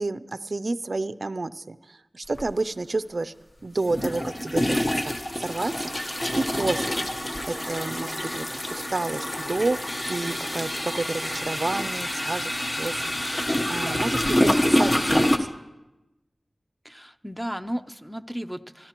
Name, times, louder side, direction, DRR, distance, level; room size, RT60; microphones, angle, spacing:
voice 1, 0.0-3.3 3.6-7.0 7.5-9.8 10.0-13.4 13.7-15.6, right 3 dB, 55° right, 14 dB, 0.4 m, -30 dB
sound 1, 2.3-2.5 3.8-15.4, left 1 dB, 35° left, 1.0 m, -26 dB
voice 2, 16.8-18.9, equal, ahead, 8 dB, 0.6 m, -34 dB
24.0 x 13.5 x 3.0 m, 1.0 s
wide cardioid pair, 75°, 0 cm